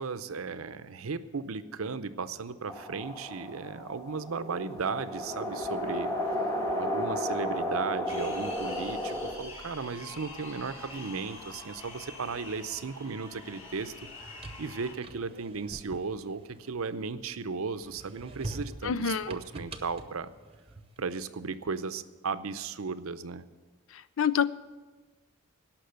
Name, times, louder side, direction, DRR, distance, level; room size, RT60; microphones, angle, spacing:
voice 1, 0.0-6.1 6.8-13.9 14.6-20.3 21.0-23.4, right 4 dB, 90° right, 13 dB, 0.7 m, -35 dB
sound 1, 2.7-9.3, equal, 15° left, 1.5 m, -33 dB
sound 2, 8.1-14.9, left 2 dB, 35° left, 3.5 m, -45 dB
sound 3, 14.0-17.3 17.8-21.1, right 2 dB, 30° right, 0.8 m, -44 dB
voice 2, 18.8-19.3 24.2-24.5, left 7 dB, 70° left, 17 dB, 0.4 m, -26 dB
17.0 x 6.0 x 7.9 m, 1.3 s
head